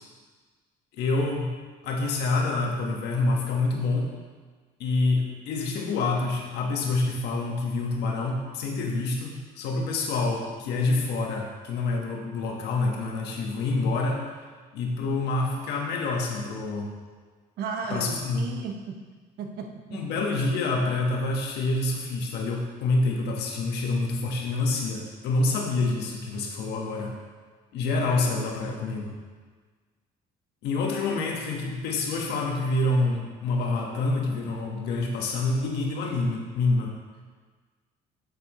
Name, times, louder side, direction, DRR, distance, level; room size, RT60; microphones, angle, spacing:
voice 1, 0.9-1.6 1.8-4.1 4.8-14.2 14.7-16.9 17.9-18.6 19.9-27.1 27.7-29.1 30.6-36.9, left 3 dB, 75° left, 0 dB, 1.4 m, -27 dB
voice 2, 17.6-19.0 19.4-20.0, right 5 dB, 65° right, 3 dB, 1.1 m, -34 dB
9.0 x 6.9 x 3.1 m, 1.4 s
cardioid pair, 105°, 17 cm